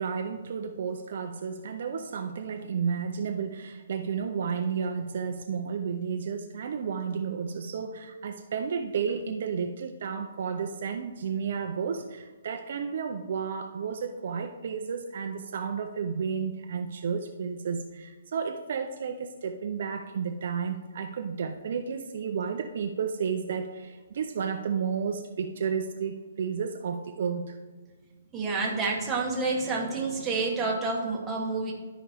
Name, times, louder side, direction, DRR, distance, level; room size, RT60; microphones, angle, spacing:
voice 1, 0.0-27.6, right 6 dB, 45° right, 5 dB, 0.4 m, -32 dB
voice 2, 28.3-31.7, right 3 dB, 10° right, -3 dB, 1.0 m, -29 dB
12.5 x 4.9 x 3.4 m, 1.4 s
hypercardioid pair, 175°, 0 cm